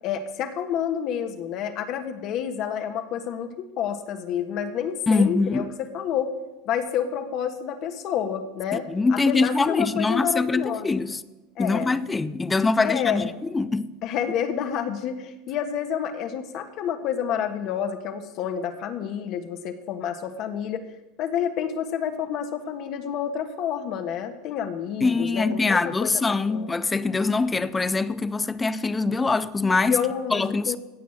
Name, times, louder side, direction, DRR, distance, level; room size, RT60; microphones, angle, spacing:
voice 1, 0.0-6.3 6.6-8.8 9.1-10.9 11.6-11.9 12.8-13.3 14.0-20.8 21.2-26.2 26.5-26.8 29.9-30.8, left 8 dB, 55° left, 1.4 m, -29 dB
voice 2, 5.1-5.7 8.7-11.2 11.6-13.9 25.0-30.0 30.3-30.8, left 3 dB, 15° left, 0.6 m, -23 dB
16.0 x 6.1 x 8.8 m
supercardioid pair, 105°, 0 cm